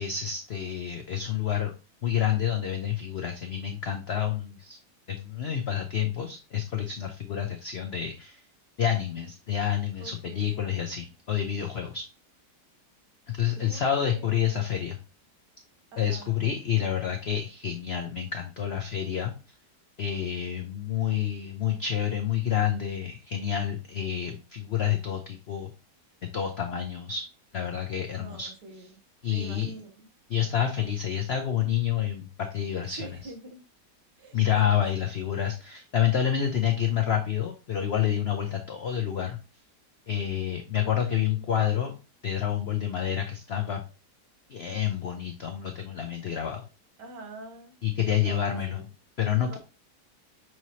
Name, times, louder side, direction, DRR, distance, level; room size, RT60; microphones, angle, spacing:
voice 1, 0.0-1.7 2.0-4.8 5.1-8.4 8.8-12.0 13.4-15.0 16.0-19.3 20.0-25.7 26.3-27.2 27.5-28.5 29.2-29.7 30.3-32.3 32.5-33.1 34.3-39.4 40.1-41.9 42.2-43.8 44.5-46.6 47.8-48.8 49.2-49.6, left 9 dB, 75° left, 4 dB, 0.5 m, -28 dB
voice 2, 10.0-10.9 13.5-14.3 15.9-16.4 28.1-29.0 29.3-30.1 32.9-33.6 34.2-35.1 40.1-40.3 40.6-41.4 47.0-47.7 48.2-48.9 49.5-49.6, right 3 dB, 75° right, 4 dB, 1.6 m, -46 dB
6.1 x 2.8 x 3.0 m, 0.32 s
omnidirectional pair, 1.9 m